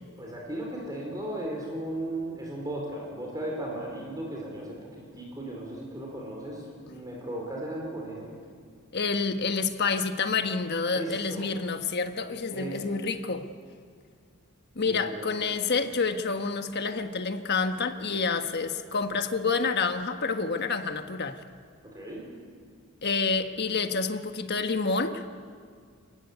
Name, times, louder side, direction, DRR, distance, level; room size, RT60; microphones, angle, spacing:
voice 1, 0.2-8.3 10.9-11.5 12.5-12.9 14.8-15.3 21.8-22.3, right 1 dB, 15° right, -2 dB, 4.4 m, -36 dB
voice 2, 8.9-13.5 14.7-21.4 23.0-25.2, left 4 dB, 50° left, 7 dB, 1.4 m, -28 dB
29.0 x 15.5 x 9.5 m, 2.1 s
head